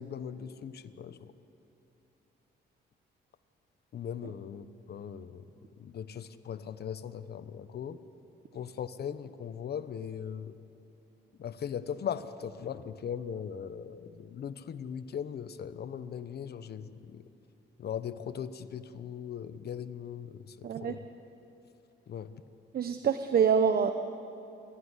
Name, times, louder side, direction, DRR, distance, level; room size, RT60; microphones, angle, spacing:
voice 1, 0.0-1.3 3.9-5.4 5.8-8.0 8.5-10.6 11.4-17.2 17.8-21.0 22.1-22.3, left 8 dB, 55° left, 12 dB, 1.0 m, -39 dB
voice 2, 20.6-20.9 22.7-23.9, right 7 dB, 50° right, 9 dB, 0.9 m, -25 dB
28.5 x 11.5 x 9.9 m, 2.9 s
cardioid pair, 90°, 20 cm